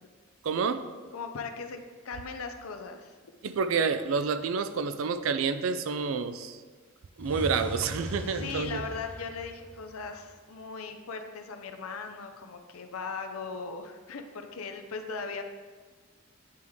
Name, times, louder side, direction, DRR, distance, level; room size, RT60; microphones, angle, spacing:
voice 1, 0.4-0.9 3.4-6.6 7.2-8.8, right 5 dB, 75° right, 11 dB, 0.4 m, -29 dB
voice 2, 1.1-1.8 2.0-3.2 8.3-15.4, left 4 dB, 90° left, 6 dB, 0.6 m, -38 dB
sound 1, 7.2-10.3, left 1 dB, 5° left, 0.3 m, -40 dB
9.2 x 3.1 x 3.5 m, 1.5 s
head